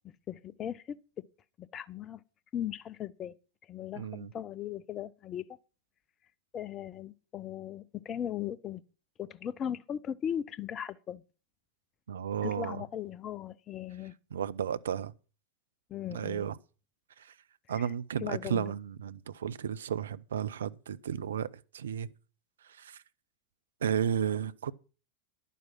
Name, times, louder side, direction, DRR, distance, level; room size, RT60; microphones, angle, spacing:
voice 1, 0.0-1.3 1.6-2.2 2.5-3.4 3.7-5.5 6.5-8.8 9.2-11.2 12.4-14.1 15.9-16.5 17.7-18.8, left 10 dB, 25° left, 0.7 m, -38 dB
voice 2, 4.0-4.3 12.1-12.8 14.3-15.1 16.1-16.6 17.2-17.3 17.7-21.5 21.7-22.1 22.6-23.0 23.8-24.7, right 8 dB, 65° right, 0.6 m, -33 dB
11.0 x 9.3 x 6.1 m
figure-of-eight pair, 90°, 0 cm